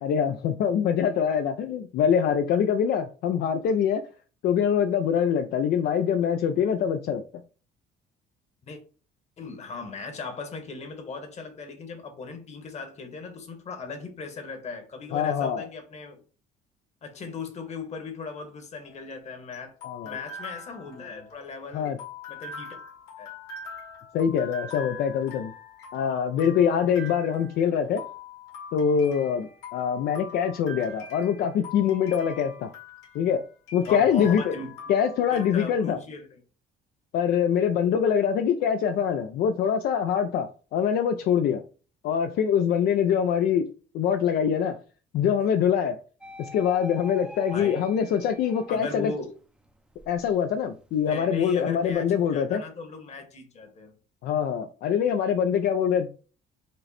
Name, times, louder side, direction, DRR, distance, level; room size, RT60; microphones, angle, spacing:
voice 1, 0.0-4.0 4.4-7.2 15.1-15.7 19.8-20.1 21.7-22.0 24.1-25.5 25.9-28.0 28.7-32.7 33.1-33.4 33.7-34.5 34.9-36.0 37.1-41.6 42.0-43.7 43.9-44.8 45.1-46.0 46.4-49.1 50.1-52.6 54.2-56.1, left 8 dB, 70° left, 0.5 m, -24 dB
voice 2, 9.4-16.2 17.0-19.7 20.0-22.8 23.2-23.3 33.9-34.8 35.3-36.4 47.5-47.9 48.7-49.3 51.1-53.9, left 4 dB, 40° left, 1.3 m, -38 dB
sound 1, 18.8-35.5, left 4 dB, 85° left, 1.5 m, -43 dB
sound 2, 46.2-49.1 49.6-51.9, equal, 5° right, 0.5 m, -46 dB
5.2 x 2.1 x 4.1 m
cardioid pair, 110°, 17 cm